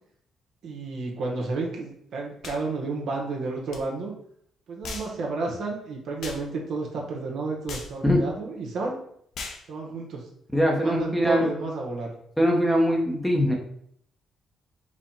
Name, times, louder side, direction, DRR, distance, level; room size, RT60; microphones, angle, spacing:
voice 1, 0.6-4.1 4.7-9.0 9.7-10.3 10.7-12.1, right 3 dB, 70° right, -1 dB, 1.3 m, -31 dB
sound 1, 2.4-2.6 3.7-3.8 4.8-5.1 6.2-6.4 7.7-7.9 9.3-9.6, left 4 dB, 70° left, 0.8 m, -37 dB
voice 2, 10.5-11.4 12.4-13.6, equal, 5° left, 1 dB, 0.9 m, -22 dB
5.0 x 2.4 x 4.4 m, 0.67 s
cardioid pair, 90°, 0 cm